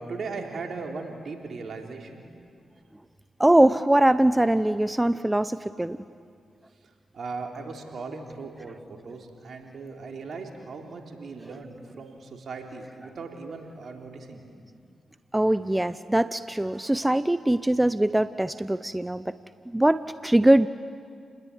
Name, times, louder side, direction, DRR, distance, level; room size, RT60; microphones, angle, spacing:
voice 1, 0.0-2.2 7.1-14.5, right 4 dB, 65° right, 3 dB, 3.7 m, -38 dB
voice 2, 3.4-6.0 15.3-19.3 19.7-20.7, right 1 dB, 15° right, 14 dB, 0.8 m, -22 dB
30.0 x 20.5 x 9.6 m, 2.4 s
supercardioid pair, 40°, 0 cm